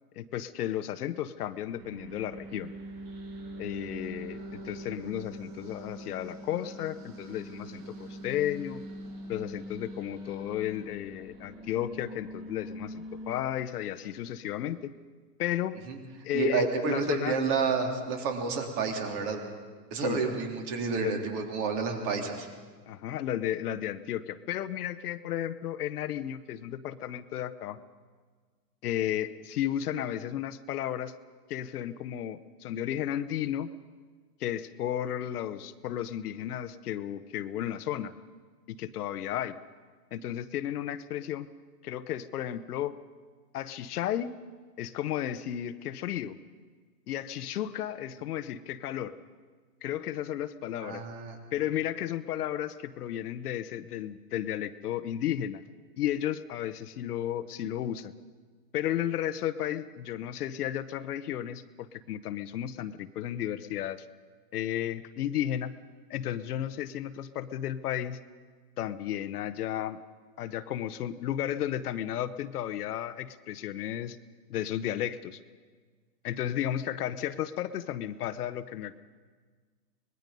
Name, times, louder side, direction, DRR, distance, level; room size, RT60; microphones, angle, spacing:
voice 1, 0.2-2.7 3.6-8.8 9.3-14.9 15.4-15.8 16.2-17.4 20.0-20.3 20.8-21.2 22.2-22.3 22.9-27.8 28.8-31.1 31.5-33.7 34.4-38.1 38.7-39.6 40.1-41.5 41.8-43.0 43.5-44.3 44.8-46.4 47.1-49.1 49.8-51.0 51.5-55.6 56.0-58.1 58.7-64.0 64.5-65.7 66.1-68.2 68.8-70.0 70.4-74.2 74.5-75.4 76.2-79.0, left 11 dB, 65° left, 12 dB, 1.1 m, -33 dB
sound 1, 1.8-13.4, equal, 65° right, 6.2 m, -43 dB
voice 2, 16.3-19.4 19.9-22.5 50.8-51.4, right 4 dB, 45° right, 2 dB, 3.9 m, -30 dB
24.5 x 20.5 x 5.4 m, 1.5 s
hypercardioid pair, 120°, 48 cm